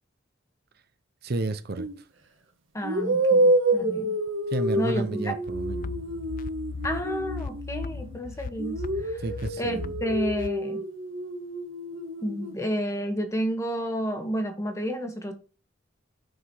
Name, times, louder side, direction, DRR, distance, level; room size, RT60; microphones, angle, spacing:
voice 1, 1.2-1.9 4.5-6.0 9.0-9.9, right 2 dB, 50° right, 0.7 m, -32 dB
sound 1, 1.8-2.0 2.8-8.2 8.6-12.5, right 1 dB, 75° right, 1.5 m, -28 dB
voice 2, 2.7-4.1 4.8-5.3 6.8-9.2 9.6-10.8 12.2-15.3, equal, 15° left, 1.3 m, -31 dB
sound 2, 5.5-10.5, left 4 dB, 45° left, 0.4 m, -37 dB
6.4 x 4.9 x 6.1 m
head